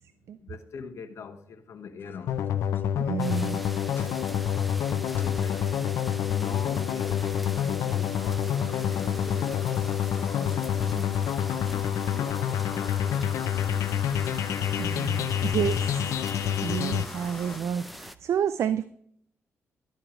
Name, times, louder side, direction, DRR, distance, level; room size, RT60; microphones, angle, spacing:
voice 1, 0.4-2.5 5.1-5.7 6.2-9.6 10.1-11.2 11.5-13.8, left 6 dB, 70° left, 1.0 m, -42 dB
sound 1, 2.0-5.4 5.8-17.6, left 4 dB, 45° left, 1.0 m, -47 dB
sound 2, 2.3-17.0, left 9 dB, 90° left, 0.5 m, -27 dB
voice 2, 3.0-3.6 14.8-16.1 16.6-18.8, right 8 dB, 65° right, 0.3 m, -30 dB
sound 3, 3.2-18.2, equal, ahead, 0.5 m, -43 dB
12.0 x 4.6 x 5.0 m
cardioid pair, 85°, 5 cm